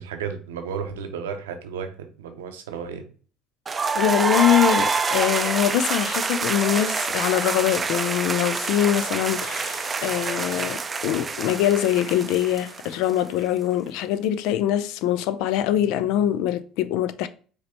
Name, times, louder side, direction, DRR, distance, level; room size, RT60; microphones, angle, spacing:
voice 1, 0.0-3.0, right 6 dB, 75° right, 0.6 m, -33 dB
sound 1, 3.7-13.4, right 4 dB, 30° right, 0.4 m, -26 dB
voice 2, 3.9-17.3, left 11 dB, 65° left, 0.3 m, -23 dB
5.0 x 3.0 x 2.8 m
hypercardioid pair, 60°, 0 cm